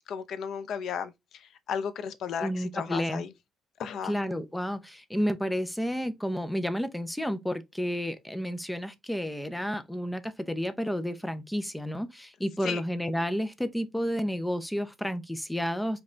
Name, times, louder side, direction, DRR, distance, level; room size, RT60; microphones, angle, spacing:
voice 1, 0.1-3.3 3.8-4.2 12.6-12.8, left 7 dB, 60° left, 0.6 m, -34 dB
voice 2, 2.4-3.2 4.0-16.0, equal, 5° left, 0.5 m, -31 dB
5.2 x 2.3 x 3.8 m
cardioid pair, 165°, 0 cm